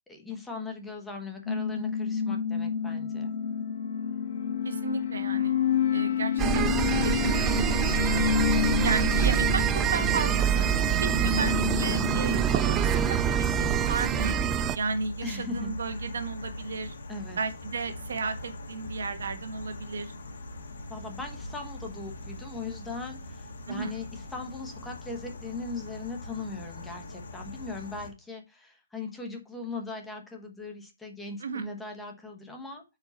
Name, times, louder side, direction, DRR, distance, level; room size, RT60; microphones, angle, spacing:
voice 1, 0.1-3.3 11.2-11.5 15.2-15.7 17.1-17.4 20.9-32.8, left 3 dB, 5° left, 2 dB, 1.1 m, -39 dB
sound 1, 1.5-13.9, left 7 dB, 45° left, 1.5 m, -29 dB
voice 2, 4.6-5.6 5.9-8.2 8.8-10.7 11.0-14.4 14.7-17.0 17.4-20.1 23.7-24.0 31.4-31.7, right 4 dB, 70° right, 8 dB, 1.4 m, -34 dB
sound 2, 6.4-14.8, right 10 dB, 15° right, 0.3 m, -26 dB
sound 3, 10.0-28.1, left 1 dB, 65° left, 1.9 m, -42 dB
8.5 x 4.9 x 3.9 m, 0.26 s
hypercardioid pair, 165°, 0 cm